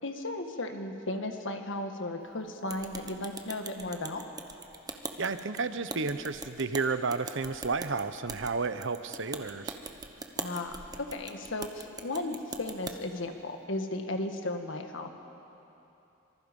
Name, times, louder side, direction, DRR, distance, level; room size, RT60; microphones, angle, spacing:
voice 1, 0.0-4.2 10.4-15.1, left 2 dB, 65° left, 5 dB, 1.8 m, -35 dB
sound 1, 2.7-13.0, right 3 dB, 20° right, 1.1 m, -42 dB
voice 2, 5.2-9.8, right 4 dB, 65° right, 11 dB, 0.9 m, -32 dB
26.0 x 24.0 x 5.4 m, 2.9 s
head